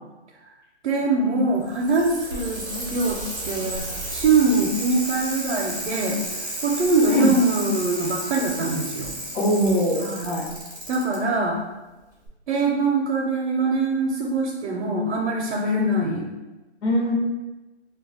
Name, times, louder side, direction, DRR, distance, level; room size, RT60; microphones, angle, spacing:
voice 1, 0.8-9.1 10.0-10.3 10.9-11.6 12.5-16.3, right 3 dB, 70° right, -1 dB, 0.5 m, -23 dB
Bicycle, 1.5-11.2 12.3-12.4, right 1 dB, 20° right, 0.4 m, -33 dB
voice 2, 9.3-10.5 15.8-15.9 16.8-17.1, equal, 75° left, -2 dB, 0.9 m, -22 dB
2.3 x 2.1 x 3.8 m, 1.1 s
hypercardioid pair, 165°, 34 cm